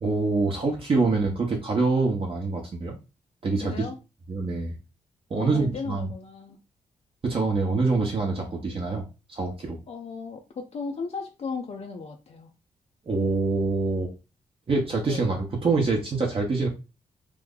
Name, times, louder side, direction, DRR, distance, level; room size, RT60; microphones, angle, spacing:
voice 1, 0.0-2.9 3.4-3.7 4.3-4.8 5.3-6.1 7.2-9.8 13.1-14.1 14.7-16.7, right 3 dB, 40° right, 0 dB, 0.8 m, -25 dB
voice 2, 3.6-4.0 5.3-6.6 9.9-12.5 15.1-15.2, left 5 dB, 50° left, 2 dB, 0.5 m, -36 dB
3.0 x 2.1 x 3.7 m, 0.29 s
wide cardioid pair, 120°, 14 cm